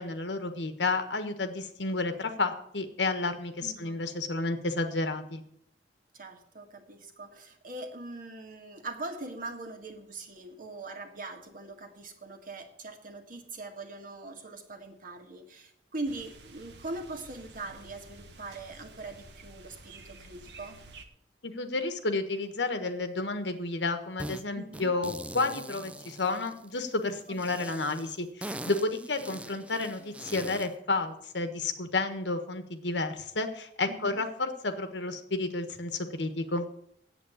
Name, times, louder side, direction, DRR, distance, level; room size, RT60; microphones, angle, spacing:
voice 1, 0.0-5.4 21.4-36.7, left 3 dB, 85° left, 8 dB, 1.4 m, -31 dB
voice 2, 3.6-4.0 6.1-20.8 24.5-24.9 27.6-27.7 33.9-34.2, right 2 dB, 50° right, 5 dB, 1.8 m, -41 dB
sound 1, 16.0-21.1, right 3 dB, 70° right, 1.4 m, -51 dB
sound 2, 24.2-24.4 24.7-26.9 27.4-30.8, right 1 dB, 5° right, 0.5 m, -42 dB
8.5 x 8.4 x 8.5 m, 0.69 s
head